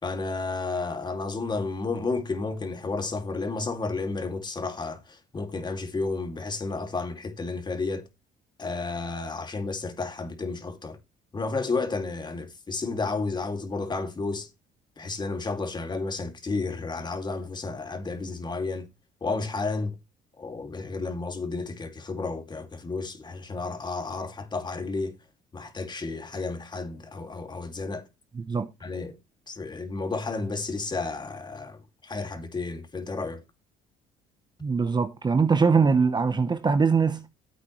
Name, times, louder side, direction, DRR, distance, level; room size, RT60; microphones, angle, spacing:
voice 1, 0.0-8.0 8.6-11.0 11.3-14.5 15.0-18.9 19.2-20.0 20.4-25.1 25.5-28.0 28.8-29.1 29.5-33.4, left 3 dB, 25° left, 2.4 m, -32 dB
voice 2, 28.4-28.7 34.6-37.3, right 5 dB, 25° right, 1.0 m, -22 dB
13.0 x 8.4 x 3.1 m
cardioid pair, 110°, 17 cm